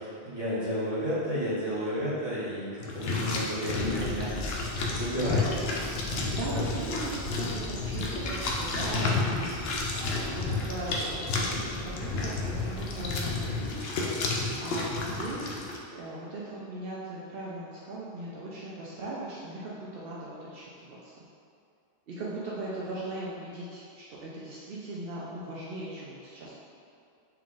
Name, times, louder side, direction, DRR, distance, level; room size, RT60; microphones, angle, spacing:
voice 1, 0.0-4.4 4.9-5.5 6.1-6.3 6.5-6.8, equal, 25° right, -9 dB, 1.1 m, -32 dB
sound 1, 2.8-15.8, left 3 dB, 75° left, 0.8 m, -31 dB
Bird vocalization bird call bird song, 3.7-13.8, left 1 dB, 50° left, 0.5 m, -41 dB
voice 2, 6.4-21.1 22.1-26.6, right 2 dB, 70° right, -6 dB, 0.8 m, -39 dB
4.5 x 2.4 x 3.7 m, 2.4 s
omnidirectional pair, 1.0 m